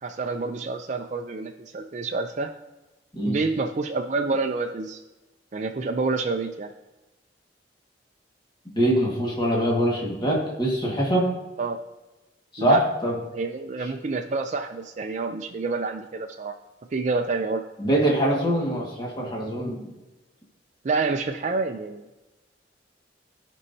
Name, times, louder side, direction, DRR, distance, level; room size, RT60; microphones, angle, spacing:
voice 1, 0.0-2.5 3.2-5.0 5.5-6.7 11.6-11.8 12.6-12.8 13.3-16.5 16.9-17.6 20.8-22.1, right 3 dB, 40° right, 3 dB, 0.4 m, -28 dB
voice 2, 8.8-11.3 12.5-13.2 17.8-19.9, right 1 dB, 25° left, -2 dB, 1.7 m, -23 dB
14.0 x 5.4 x 2.7 m, 1.1 s
head